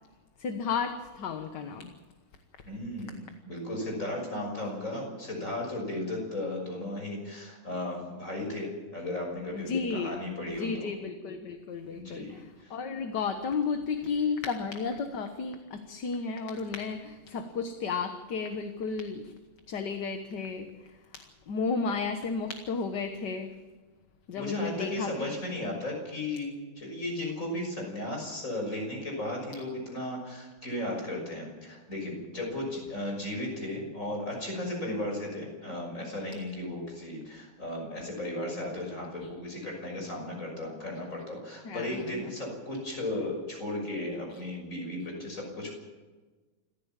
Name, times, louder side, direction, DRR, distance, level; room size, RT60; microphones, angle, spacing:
voice 1, 0.4-1.9 9.5-10.1 10.6-19.3 19.7-20.7 21.1-23.6 24.3-25.1 34.9-35.0 41.6-42.3, left 5 dB, 60° left, 6 dB, 1.8 m, -33 dB
voice 2, 2.6-10.9 11.9-12.7 24.3-45.7, left 1 dB, 35° left, 1 dB, 6.5 m, -35 dB
27.5 x 15.0 x 7.5 m, 1.3 s
omnidirectional pair, 2.3 m